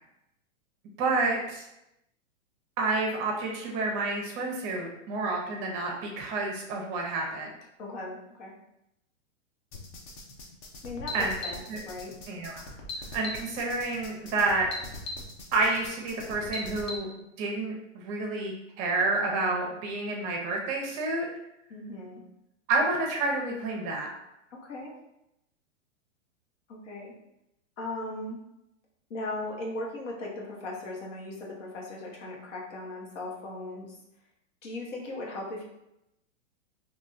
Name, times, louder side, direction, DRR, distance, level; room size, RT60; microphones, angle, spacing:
voice 1, 1.0-1.7 2.8-7.5 11.1-11.3 11.7-11.8 12.3-12.6 13.1-14.7 15.5-17.1 17.4-21.3 22.7-24.1, right 3 dB, 35° right, 0 dB, 0.7 m, -29 dB
voice 2, 7.8-8.5 10.8-12.1 21.7-22.2 24.5-24.9 26.7-27.1 27.8-28.4 29.1-34.0 34.6-35.6, left 2 dB, 65° left, -2 dB, 1.2 m, -38 dB
sound 1, 9.7-17.0, left 2 dB, 30° left, 0.5 m, -40 dB
4.0 x 2.7 x 2.5 m, 0.85 s
hypercardioid pair, 135°, 38 cm